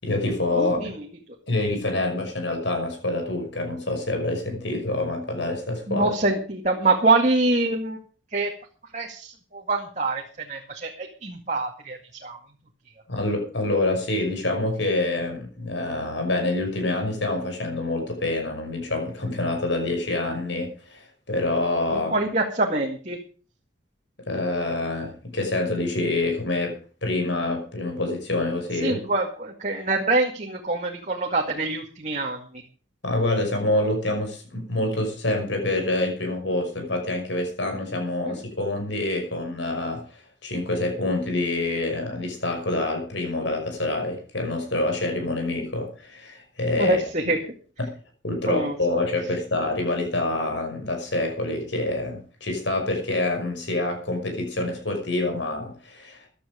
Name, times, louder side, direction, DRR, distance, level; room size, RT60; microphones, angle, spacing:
voice 1, 0.0-0.9 1.5-6.1 13.1-22.1 24.2-29.0 33.0-47.0 47.8-47.9 48.2-56.3, left 2 dB, 75° left, 4 dB, 5.8 m, -26 dB
voice 2, 0.6-1.0 5.9-8.0 8.3-8.5 8.9-12.4 21.9-23.2 28.8-32.4 38.2-38.4 46.8-47.4 48.5-48.8, right 3 dB, 40° right, 1 dB, 2.1 m, -25 dB
15.5 x 11.5 x 5.1 m, 0.39 s
head